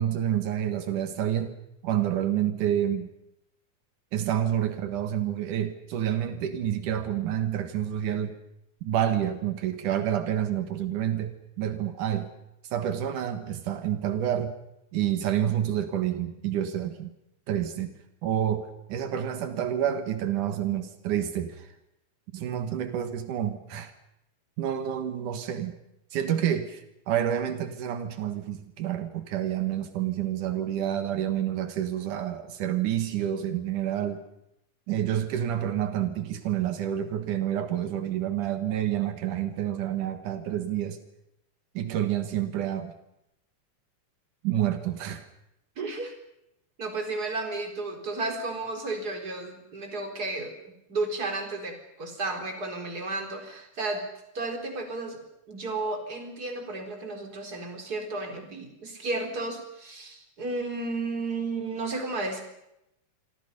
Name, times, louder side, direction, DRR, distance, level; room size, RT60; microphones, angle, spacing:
voice 1, 0.0-1.5 1.8-3.1 4.1-8.4 8.8-11.3 11.6-12.3 12.7-14.5 14.9-17.1 17.5-21.7 22.3-23.9 24.6-25.8 26.1-34.2 34.9-41.0 41.7-42.9 44.4-45.3, right 10 dB, 85° right, 8 dB, 3.1 m, -28 dB
voice 2, 45.8-46.1 46.8-50.5 50.9-54.0 54.3-62.4, right 3 dB, 30° right, 4 dB, 4.5 m, -33 dB
27.5 x 24.5 x 5.4 m, 0.82 s
omnidirectional pair, 3.5 m